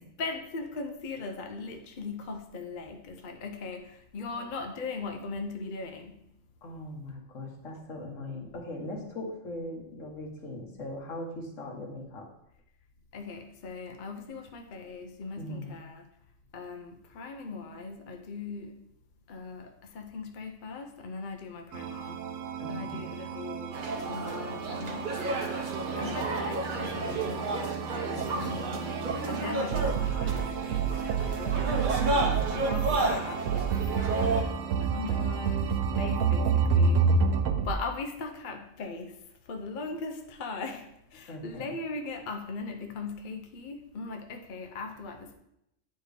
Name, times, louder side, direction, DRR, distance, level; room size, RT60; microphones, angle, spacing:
voice 1, 0.2-6.2 13.1-16.0 16.5-18.7 19.3-22.2 22.7-25.2 26.0-27.4 27.9-31.7 32.5-33.8 34.2-37.1 37.6-45.3, left 4 dB, 45° left, 4 dB, 0.7 m, -39 dB
voice 2, 6.6-12.3 15.4-15.7 22.6-23.0 32.2-32.8 41.3-41.7, left 1 dB, 75° left, 1 dB, 1.6 m, -40 dB
sound 1, 21.7-37.7, right 5 dB, 75° right, 1.0 m, -30 dB
sound 2, 23.7-34.4, right 2 dB, 45° right, 0.8 m, -32 dB
9.2 x 4.4 x 3.4 m, 0.80 s
omnidirectional pair, 1.3 m